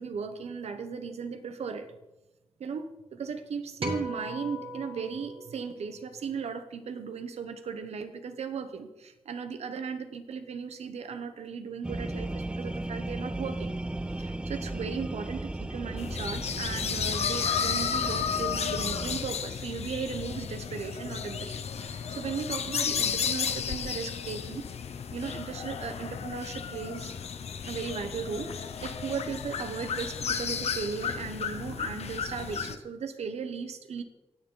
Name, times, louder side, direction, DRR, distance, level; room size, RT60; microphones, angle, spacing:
voice 1, 0.0-1.9 2.6-13.7 14.2-24.6 25.1-27.1 27.6-34.0, right 6 dB, 90° right, 9 dB, 1.0 m, -37 dB
sound 1, 3.8-6.3, right 1 dB, 60° right, 1.9 m, -38 dB
sound 2, 11.8-19.2, right 2 dB, 10° right, 0.3 m, -36 dB
sound 3, 16.0-32.8, left 7 dB, 80° left, 0.7 m, -33 dB
18.5 x 7.0 x 3.9 m, 1.0 s
cardioid pair, 85°, 11 cm